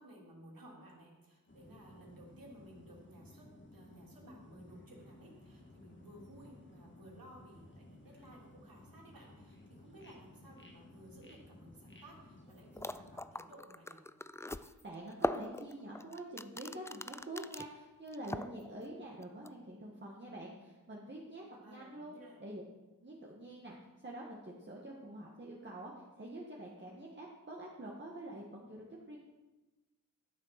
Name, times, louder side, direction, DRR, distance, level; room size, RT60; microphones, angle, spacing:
voice 1, 0.0-14.0 21.5-22.4, right 1 dB, 85° right, -2 dB, 3.1 m, -57 dB
sound 1, 1.5-13.2, left 2 dB, 35° left, 1.8 m, -57 dB
sound 2, 12.5-12.6 12.8-17.7 18.1-18.9 19.2-19.5, left 2 dB, 10° left, 0.3 m, -40 dB
voice 2, 14.4-22.1 22.4-22.6 23.0-23.8 24.0-29.2, right 1 dB, 35° right, -3 dB, 1.7 m, -46 dB
12.5 x 7.5 x 5.9 m, 1.1 s
wide cardioid pair, 105°, 34 cm